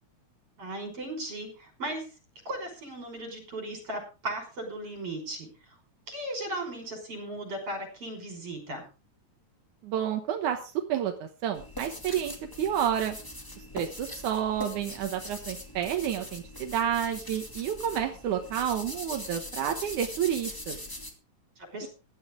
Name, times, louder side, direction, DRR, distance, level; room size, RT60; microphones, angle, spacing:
voice 1, 0.6-2.1 2.5-5.5 6.1-8.8 21.6-21.9, right 1 dB, 50° right, 4 dB, 6.3 m, -36 dB
voice 2, 9.8-13.2 13.7-20.8, right 9 dB, 85° right, 5 dB, 2.7 m, -30 dB
sound 1, 11.6-21.1, left 1 dB, 10° left, 1.8 m, -41 dB
16.0 x 12.0 x 3.7 m, 0.32 s
omnidirectional pair, 3.4 m